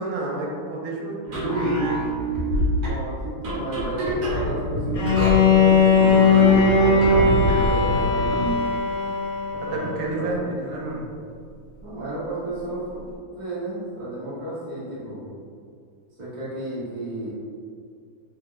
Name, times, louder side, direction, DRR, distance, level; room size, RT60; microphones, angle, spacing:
voice 1, 0.0-2.0 9.6-11.1, right 2 dB, 85° right, -1 dB, 1.5 m, -29 dB
sound 1, 1.2-8.6, equal, 60° right, 1.3 m, -26 dB
voice 2, 2.8-8.5 9.5-10.3 11.8-13.0 13.3-15.3 16.2-17.3, right 1 dB, 30° right, -9 dB, 0.8 m, -32 dB
Bowed string instrument, 4.9-9.9, left 4 dB, 65° left, 1.2 m, -19 dB
3.4 x 2.3 x 3.7 m, 2.2 s
omnidirectional pair, 2.3 m